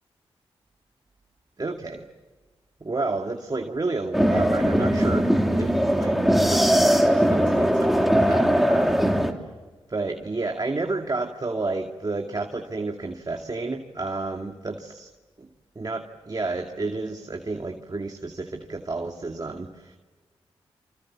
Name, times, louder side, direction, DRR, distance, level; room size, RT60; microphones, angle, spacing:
voice 1, 1.6-2.0 2.8-5.3 5.6-9.2 9.9-15.1 15.4-15.5 15.8-20.0, right 3 dB, 35° right, 3 dB, 2.3 m, -31 dB
sound 1, 4.1-9.3, equal, ahead, 3.3 m, -20 dB
28.0 x 26.0 x 7.5 m, 1.3 s
supercardioid pair, 40°, 11 cm